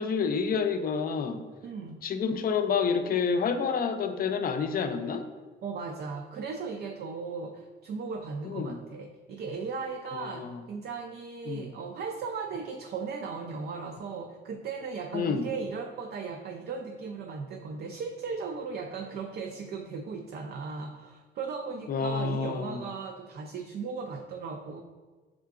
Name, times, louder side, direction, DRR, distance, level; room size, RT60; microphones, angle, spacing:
voice 1, 0.0-1.5 2.0-5.2 8.4-8.8 10.1-10.6 11.5-11.7 15.1-15.5 21.9-22.8, left 5 dB, 50° left, 8 dB, 0.4 m, -29 dB
voice 2, 1.6-2.0 5.6-24.8, right 5 dB, 55° right, 3 dB, 0.4 m, -37 dB
5.5 x 3.7 x 2.4 m, 1.3 s
cardioid pair, 90°, 20 cm